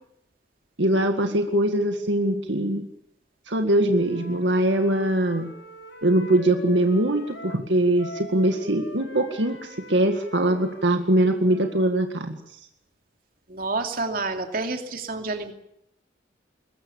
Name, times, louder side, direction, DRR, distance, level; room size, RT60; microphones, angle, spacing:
voice 1, 0.8-2.8 3.5-5.5 6.0-12.4, right 1 dB, 75° right, 5 dB, 2.0 m, -22 dB
Wind instrument woodwind instrument, 3.9-7.6 8.0-12.0, equal, 75° left, 5.6 m, -43 dB
voice 2, 13.5-15.5, right 3 dB, 50° right, 5 dB, 2.8 m, -29 dB
22.5 x 21.0 x 7.3 m, 0.77 s
head